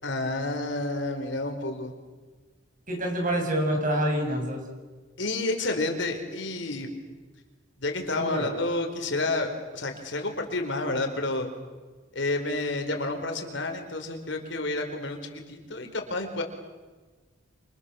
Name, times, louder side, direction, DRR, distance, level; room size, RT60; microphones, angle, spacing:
voice 1, 0.0-1.9 5.2-6.9 7.8-11.5 12.1-16.4, left 2 dB, 65° left, 5 dB, 4.6 m, -30 dB
voice 2, 2.9-4.6 8.2-8.5, right 1 dB, 45° right, 3 dB, 7.5 m, -27 dB
28.5 x 27.5 x 7.2 m, 1.3 s
head